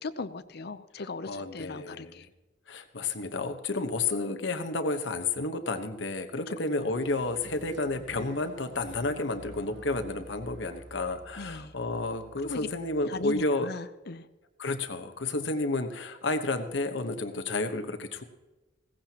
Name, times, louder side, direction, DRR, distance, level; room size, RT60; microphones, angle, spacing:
voice 1, 0.0-2.3 6.5-6.9 11.4-11.7 12.4-12.7 13.0-14.3, left 3 dB, 60° left, 13 dB, 0.6 m, -38 dB
voice 2, 1.3-2.1 2.7-13.7 14.6-18.2, left 2 dB, 75° left, 7 dB, 1.1 m, -31 dB
sound 1, 6.8-13.0, right 2 dB, 70° right, 1.2 m, -50 dB
17.0 x 15.0 x 2.9 m, 1.1 s
head